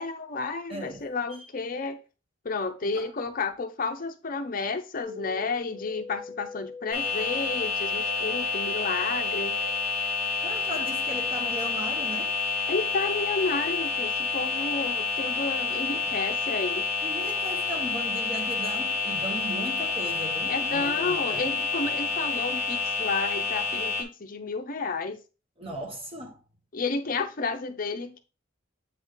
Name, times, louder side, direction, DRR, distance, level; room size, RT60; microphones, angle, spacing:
voice 1, 0.0-2.0 2.4-9.5 12.7-16.9 20.5-25.2 26.7-28.2, left 4 dB, 45° left, 0.6 m, -31 dB
voice 2, 0.7-1.0 2.9-3.1 10.4-12.3 17.0-21.5 25.6-26.4, right 1 dB, 30° right, 1.3 m, -37 dB
sound 1, 5.0-9.8, left 1 dB, 55° right, 2.7 m, -41 dB
sound 2, 6.9-24.0, left 4 dB, 10° right, 1.6 m, -29 dB
8.0 x 3.7 x 3.7 m
head